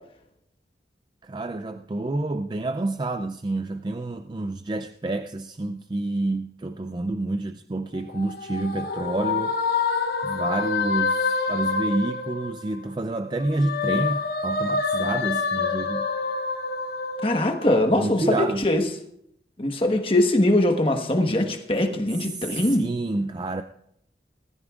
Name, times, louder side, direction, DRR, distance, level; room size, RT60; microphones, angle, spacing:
voice 1, 1.2-9.6 10.2-16.1 17.9-18.7 22.1-23.6, right 2 dB, 25° right, 9 dB, 0.3 m, -28 dB
sound 1, 8.0-12.9 13.3-18.1, left 4 dB, 60° left, 1.0 m, -27 dB
voice 2, 17.2-18.8 19.6-22.9, left 1 dB, 30° left, 5 dB, 1.3 m, -22 dB
20.5 x 13.5 x 2.4 m, 0.74 s
head